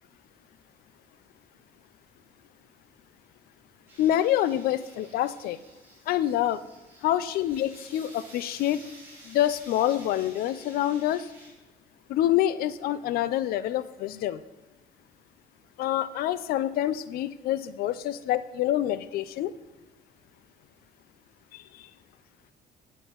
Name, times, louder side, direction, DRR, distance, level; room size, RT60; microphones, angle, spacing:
sound 1, 3.9-11.5, right 1 dB, 15° right, 4.1 m, -52 dB
voice 1, 4.0-5.6 6.1-6.6 7.0-8.8 9.2-11.3 12.1-14.4 15.8-19.5 21.5-21.9, left 12 dB, 70° left, 15 dB, 0.5 m, -26 dB
17.0 x 9.2 x 3.1 m, 1.2 s
cardioid pair, 165°, 16 cm